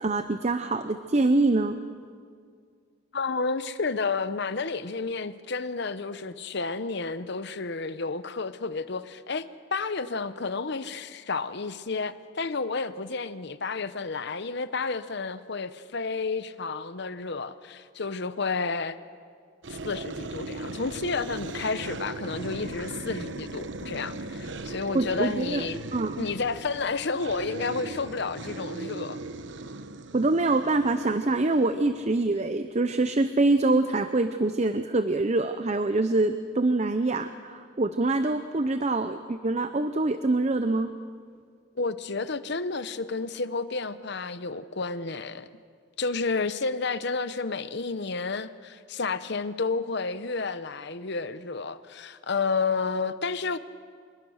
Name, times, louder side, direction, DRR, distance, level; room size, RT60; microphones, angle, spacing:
voice 1, 0.0-1.8 24.9-26.3 30.1-40.9, right 2 dB, 35° right, 10 dB, 0.6 m, -25 dB
voice 2, 3.1-19.0 19.7-25.8 26.2-29.2 41.8-45.5 46.0-53.6, left 4 dB, 55° left, 13 dB, 0.9 m, -31 dB
sound 1, 19.6-32.5, right 2 dB, 60° right, 1.0 m, -38 dB
26.0 x 21.5 x 6.5 m, 2.1 s
head